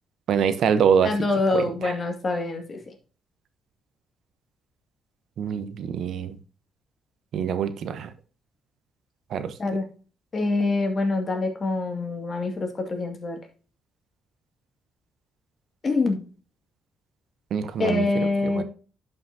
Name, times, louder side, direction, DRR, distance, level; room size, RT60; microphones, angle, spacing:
voice 1, 0.3-1.1 1.5-1.9 5.4-6.4 7.3-8.1 9.3-9.5 17.5-18.0 18.4-18.6, right 7 dB, 70° right, 0.9 m, -24 dB
voice 2, 1.0-2.9 9.6-9.8 10.3-13.4 15.8-16.2 17.8-18.6, left 3 dB, 35° left, 2.2 m, -25 dB
11.5 x 5.7 x 2.8 m
cardioid pair, 90°, 0 cm